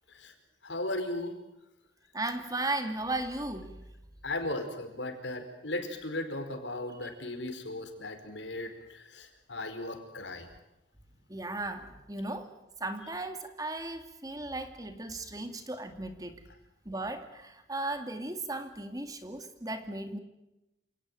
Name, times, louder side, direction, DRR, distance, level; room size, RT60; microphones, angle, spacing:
voice 1, 0.6-1.3 4.2-10.5, left 2 dB, 80° left, 7 dB, 4.8 m, -36 dB
voice 2, 2.1-3.7 11.3-12.5 12.8-16.4 16.9-20.2, right 2 dB, 20° right, 7 dB, 2.3 m, -36 dB
28.5 x 18.5 x 9.2 m, 0.91 s
head